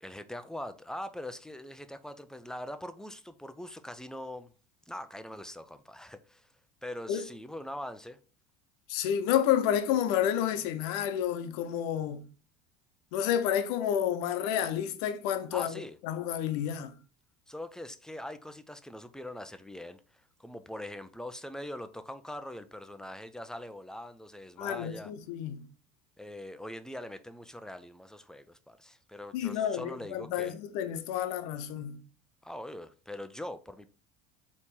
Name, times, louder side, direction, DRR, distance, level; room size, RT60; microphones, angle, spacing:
voice 1, 0.0-4.5 4.9-6.5 6.8-8.2 15.5-16.0 17.5-25.1 26.2-30.5 32.4-33.9, left 1 dB, 5° left, 0.4 m, -42 dB
voice 2, 8.9-12.3 13.1-16.9 24.6-25.7 29.3-32.0, left 10 dB, 75° left, 0.7 m, -30 dB
4.1 x 3.0 x 3.6 m
supercardioid pair, 105°, 20 cm